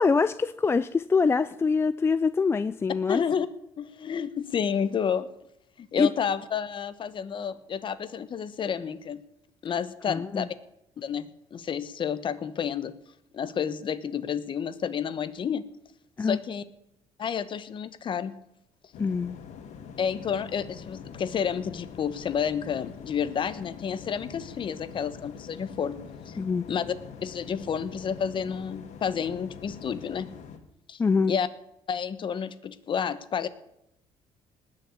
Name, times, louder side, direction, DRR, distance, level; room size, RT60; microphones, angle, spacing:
voice 1, 0.0-3.2 6.0-6.1 10.1-10.5 16.2-16.4 19.0-19.4 26.4-26.6 31.0-31.3, left 4 dB, 20° left, 13 dB, 0.4 m, -24 dB
voice 2, 3.1-3.5 3.8-5.3 5.8-9.2 9.6-10.5 11.0-12.9 13.3-15.6 16.2-16.6 17.2-18.3 20.0-26.0 26.2-26.4 26.7-26.8 27.2-30.3 30.9-31.0 31.3-31.5 31.9-33.5, left 7 dB, 40° left, 14 dB, 1.1 m, -30 dB
sound 1, 18.9-30.6, left 7 dB, 65° left, 2.1 m, -44 dB
19.0 x 6.7 x 8.5 m, 0.81 s
cardioid pair, 125°, 13 cm